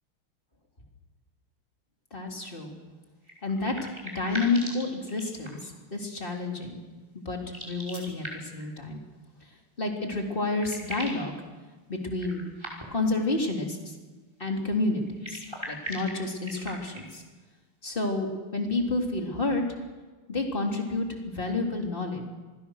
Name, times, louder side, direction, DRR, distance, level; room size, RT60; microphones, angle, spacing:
voice 1, 2.1-2.7 3.4-3.7 4.0-6.8 7.1-7.4 7.7-9.0 9.8-11.3 11.9-12.4 12.9-13.9 14.4-15.0 15.3-17.2 17.8-19.6 20.3-22.2, left 3 dB, 25° left, 1 dB, 3.5 m, -29 dB
sound 1, 3.2-5.8 7.4-8.7 10.0-10.1 10.3-11.3 12.1-13.1 15.0-17.2, equal, 10° right, 5.4 m, -40 dB
27.0 x 20.0 x 6.5 m, 1.3 s
omnidirectional pair, 2.4 m